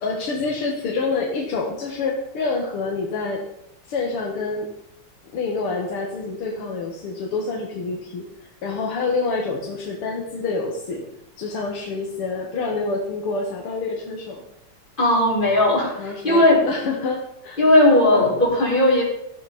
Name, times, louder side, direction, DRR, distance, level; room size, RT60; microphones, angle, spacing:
voice 1, 0.0-3.4 3.9-4.7 5.3-11.1 11.4-14.4 16.0-17.6 18.1-18.4, left 3 dB, 85° left, 1 dB, 2.6 m, -27 dB
voice 2, 15.0-16.6 17.6-19.0, left 1 dB, 20° left, -6 dB, 5.9 m, -17 dB
15.5 x 13.5 x 4.3 m, 0.81 s
omnidirectional pair, 2.4 m